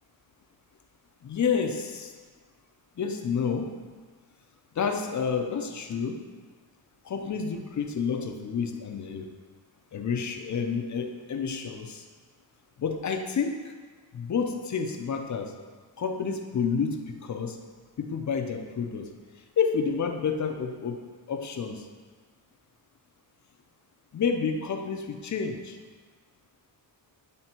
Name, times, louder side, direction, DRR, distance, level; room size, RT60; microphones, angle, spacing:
voice 1, 1.2-2.1 3.0-3.7 4.7-6.2 7.0-9.3 9.9-12.1 12.8-13.7 14.1-15.6 16.0-17.6 18.0-19.1 19.6-21.0 21.3-21.9 24.1-25.8, left 6 dB, 40° left, 5 dB, 0.6 m, -29 dB
9.4 x 3.5 x 4.4 m, 1.5 s
wide cardioid pair, 130°, 43 cm